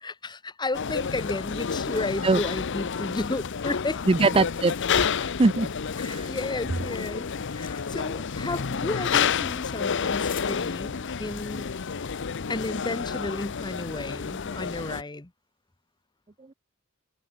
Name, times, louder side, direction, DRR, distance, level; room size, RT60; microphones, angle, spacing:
voice 1, 0.0-4.0 6.0-7.3 7.5-11.7 12.5-15.3, left 2 dB, 20° left, 1.0 m, -33 dB
sound 1, 0.7-15.0, left 6 dB, 60° left, 0.7 m, -30 dB
sound 2, 3.0-3.9 4.2-6.7 7.1-10.6, left 10 dB, 40° left, 3.1 m, -51 dB
voice 2, 4.1-5.7 6.0-6.3, right 3 dB, 25° right, 0.5 m, -22 dB
head